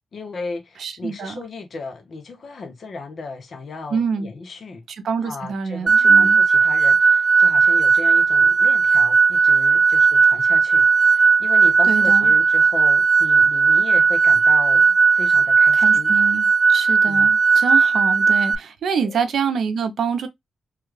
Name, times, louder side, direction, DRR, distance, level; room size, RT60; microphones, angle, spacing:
voice 1, 0.1-4.8 5.2-16.1 17.1-17.3 19.0-19.2, left 3 dB, 55° left, 0.7 m, -35 dB
voice 2, 0.8-1.4 3.9-4.3 5.0-6.4 11.9-12.3 15.7-20.3, right 6 dB, 75° right, 0.7 m, -26 dB
sound 1, 5.9-18.6, right 5 dB, 30° right, 0.4 m, -16 dB
3.2 x 2.3 x 3.1 m
cardioid pair, 100°, 0 cm